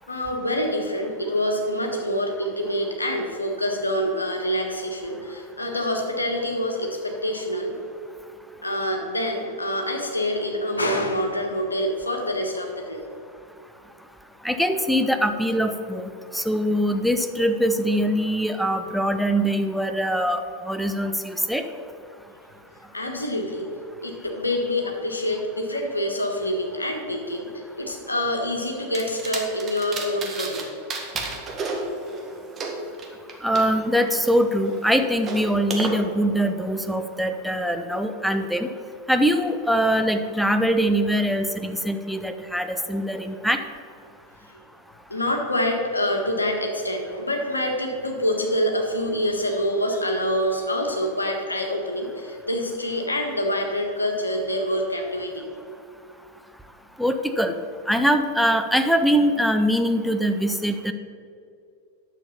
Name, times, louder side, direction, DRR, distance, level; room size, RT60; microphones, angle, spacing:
voice 1, 0.1-7.8 8.6-13.0 22.9-23.7 24.0-30.7 44.5-44.6 45.1-55.3, left 1 dB, 80° left, 2 dB, 1.5 m, -26 dB
voice 2, 14.4-21.6 33.4-38.7 39.1-43.6 57.0-57.5 57.9-60.9, equal, ahead, 7 dB, 0.7 m, -23 dB
sound 1, 28.9-30.6 30.9-33.6 34.1-35.9, right 3 dB, 25° right, 1.6 m, -32 dB
10.0 x 7.1 x 5.6 m, 2.5 s
figure-of-eight pair, 90°, 0 cm